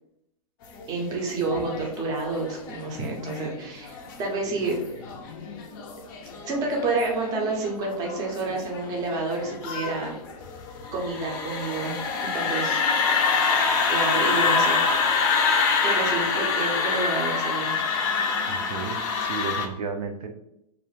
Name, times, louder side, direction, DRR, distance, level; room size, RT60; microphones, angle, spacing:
sound 1, 0.8-19.7, left 5 dB, 35° left, 0.4 m, -26 dB
voice 1, 0.9-5.1 6.5-10.2 10.9-12.8 13.9-14.8 15.8-17.8, right 3 dB, 20° right, -1 dB, 0.5 m, -29 dB
voice 2, 18.5-20.3, right 5 dB, 70° right, 4 dB, 0.5 m, -33 dB
2.4 x 2.0 x 3.1 m, 0.81 s
hypercardioid pair, 145°, 20 cm